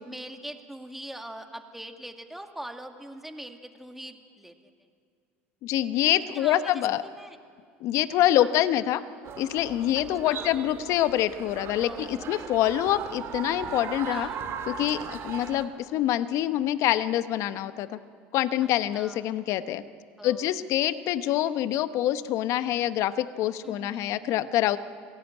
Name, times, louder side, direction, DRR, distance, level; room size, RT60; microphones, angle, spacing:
voice 1, 0.0-4.6 6.2-7.4 8.4-8.5 9.9-10.6 11.8-12.6 14.1-14.5 15.4-15.8 18.6-19.4 20.2-20.6 23.6-24.4, right 1 dB, 5° right, 5 dB, 2.2 m, -43 dB
voice 2, 5.6-7.0 7.8-9.0 9.4-14.3 14.7-18.0 18.3-19.8 20.2-24.8, left 12 dB, 60° left, 13 dB, 1.0 m, -26 dB
sound 1, 9.2-15.6, right 7 dB, 50° right, 2.4 m, -38 dB
27.0 x 17.5 x 9.1 m, 2.2 s
supercardioid pair, 90°, 6 cm